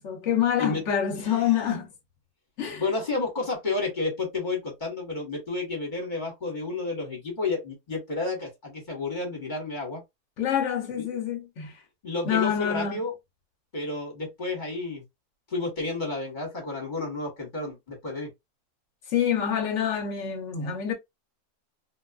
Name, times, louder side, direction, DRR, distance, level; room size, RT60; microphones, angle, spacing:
voice 1, 0.0-1.9 2.6-2.8 10.4-11.8 12.2-13.0 19.1-20.9, left 9 dB, 55° left, 1.0 m, -26 dB
voice 2, 2.8-10.0 11.0-11.1 12.0-13.1 13.7-15.0 15.5-18.3, left 3 dB, 35° left, 1.2 m, -31 dB
2.7 x 2.3 x 2.3 m
omnidirectional pair, 1.6 m